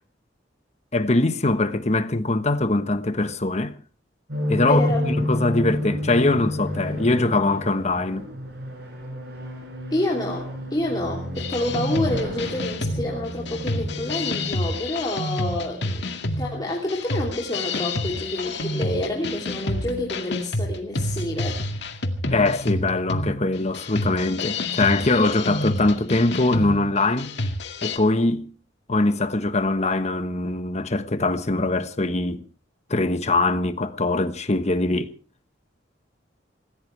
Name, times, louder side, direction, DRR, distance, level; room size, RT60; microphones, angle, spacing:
voice 1, 0.9-3.8 4.5-8.3 22.3-27.3 27.8-28.5 28.9-32.4 32.9-35.1, left 2 dB, 40° left, 1.3 m, -22 dB
sound 1, 4.3-14.5, left 1 dB, 60° right, 7.9 m, -30 dB
voice 2, 4.6-5.0 9.9-16.1 16.4-21.6, left 1 dB, 25° left, 3.1 m, -28 dB
sound 2, 11.4-28.0, left 2 dB, 65° left, 2.1 m, -29 dB
26.0 x 16.0 x 3.4 m
head